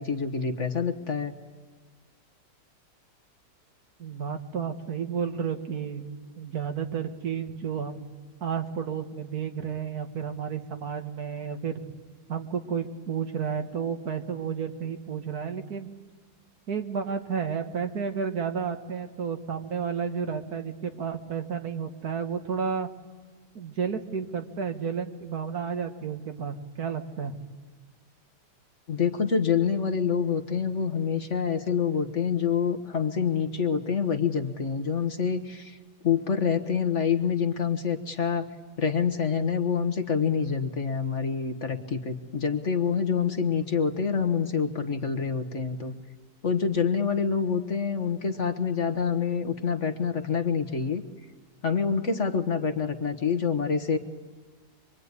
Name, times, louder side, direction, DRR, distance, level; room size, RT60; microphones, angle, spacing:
voice 1, 0.0-1.3 28.9-35.8 36.0-38.5 38.8-45.9 46.4-51.0 51.6-54.0, left 6 dB, 45° left, 7 dB, 1.5 m, -26 dB
voice 2, 4.0-8.0 8.4-11.8 12.3-15.9 16.7-22.9 23.6-27.3, right 6 dB, 60° right, 7 dB, 2.0 m, -32 dB
25.5 x 23.5 x 9.6 m, 1.4 s
omnidirectional pair, 1.8 m